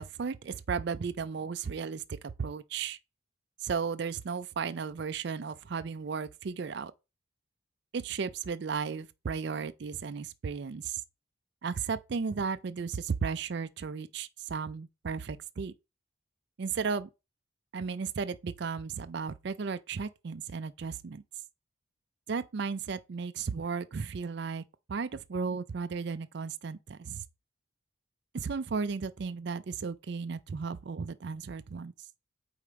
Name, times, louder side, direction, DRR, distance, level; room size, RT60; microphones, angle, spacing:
voice 1, 0.0-2.0 2.4-3.0 3.6-6.9 7.9-11.0 11.6-15.7 16.6-17.1 17.7-21.2 22.3-24.6 24.9-27.2 28.3-31.9, right 5 dB, 55° right, 0.4 m, -34 dB
4.8 x 4.2 x 5.0 m
head